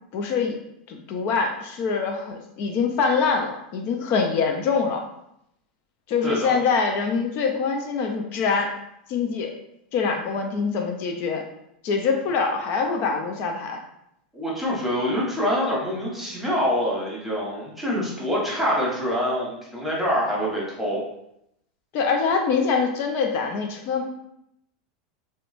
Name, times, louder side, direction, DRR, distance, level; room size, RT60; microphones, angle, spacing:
voice 1, 0.1-0.6 0.9-5.0 6.1-8.8 9.1-9.5 9.9-11.4 11.8-13.8 21.9-24.0, left 5 dB, 50° left, 3 dB, 0.4 m, -24 dB
voice 2, 14.3-21.0, equal, 5° right, -5 dB, 1.1 m, -25 dB
2.8 x 2.2 x 2.5 m, 0.78 s
hypercardioid pair, 105°, 4 cm